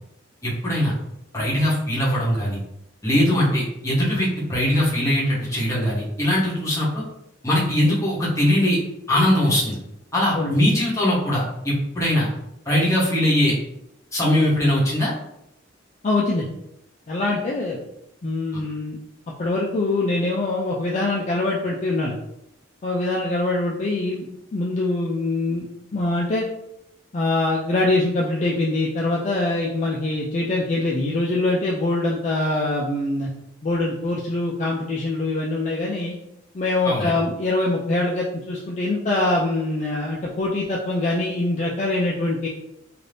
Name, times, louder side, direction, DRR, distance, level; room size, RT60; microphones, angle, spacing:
voice 1, 0.4-0.9 1.3-2.6 3.0-7.0 7.4-8.8 9.1-9.8 10.1-12.3 12.7-13.5 14.1-15.1 18.5-18.6 36.8-37.1, left 1 dB, 15° left, -7 dB, 0.9 m, -21 dB
voice 2, 16.0-16.5 17.1-17.8 18.2-19.0 19.4-22.2 22.8-24.3 24.5-26.5 27.1-33.3 33.6-36.1 36.5-42.5, left 2 dB, 35° left, -3 dB, 0.4 m, -23 dB
2.6 x 2.4 x 3.3 m, 0.82 s
head